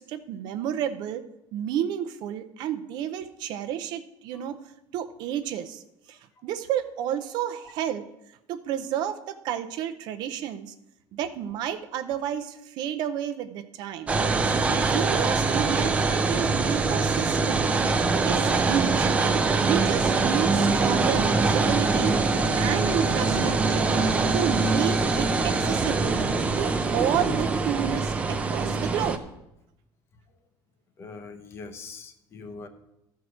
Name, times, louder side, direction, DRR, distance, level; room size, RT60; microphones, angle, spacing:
voice 1, 0.0-4.6 4.9-5.8 6.1-8.1 8.5-10.7 11.1-14.1 14.9-17.7 18.3-19.1 19.6-22.2 22.6-24.0 24.3-26.3 26.6-29.2, right 10 dB, 60° right, 9 dB, 0.6 m, -31 dB
sound 1, 14.1-29.2, right 3 dB, 15° right, 0.5 m, -23 dB
voice 2, 31.0-32.7, left 4 dB, 30° left, 7 dB, 0.8 m, -42 dB
13.0 x 4.7 x 6.3 m, 0.85 s
cardioid pair, 180°, 9 cm